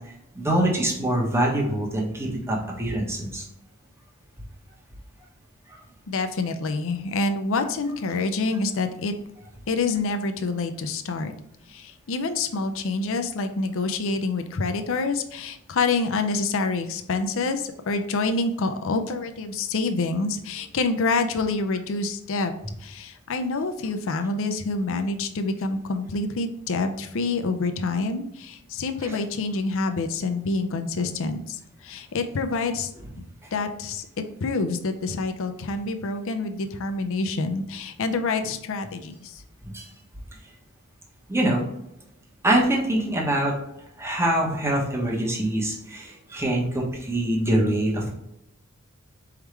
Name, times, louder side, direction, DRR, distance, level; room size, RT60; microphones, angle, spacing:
voice 1, 0.3-3.4 29.0-29.2 39.7-39.9 41.3-41.7 42.4-43.5 44.0-48.1, right 1 dB, 10° right, -2 dB, 1.2 m, -24 dB
voice 2, 6.1-9.1 9.7-11.3 11.7-22.5 22.8-31.6 31.8-32.9 33.5-34.0 34.4-39.1, left 3 dB, 65° left, 7 dB, 0.5 m, -27 dB
4.6 x 3.6 x 3.2 m, 0.80 s
head